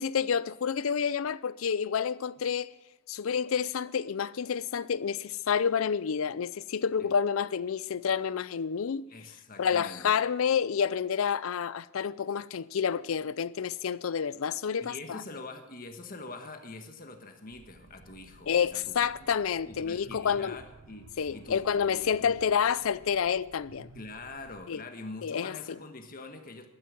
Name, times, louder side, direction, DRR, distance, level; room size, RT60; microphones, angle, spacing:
voice 1, 0.0-2.7 3.1-9.0 9.6-15.2 18.5-20.6 21.2-23.9 24.7-24.8 25.2-25.8, left 7 dB, 80° left, 0.5 m, -29 dB
voice 2, 9.1-10.1 14.8-19.1 19.6-22.6 23.9-26.7, left 2 dB, 45° left, 1.5 m, -44 dB
sound 1, 17.5-24.7, right 3 dB, 65° right, 0.8 m, -55 dB
12.0 x 9.6 x 7.1 m
head